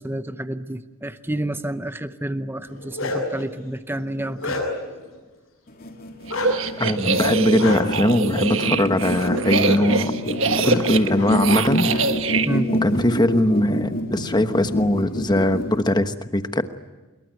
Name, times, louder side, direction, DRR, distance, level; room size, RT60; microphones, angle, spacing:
voice 1, 0.0-4.6 12.5-12.7, right 1 dB, 10° right, 11 dB, 0.7 m, -29 dB
Bark, 2.6-3.4 3.9-4.9 6.3-6.5 7.6-7.8 9.1-9.3 9.6-9.8 10.6-10.8 11.1-12.0, left 3 dB, 65° left, 7.7 m, -30 dB
sound 1, 5.7-15.8, equal, 45° left, 3.3 m, -27 dB
sound 2, 6.3-12.5, right 4 dB, 60° right, 1.5 m, -24 dB
voice 2, 6.8-10.1 10.6-11.9 12.8-16.6, left 1 dB, 20° left, 9 dB, 1.1 m, -21 dB
25.5 x 22.5 x 9.3 m, 1.3 s
head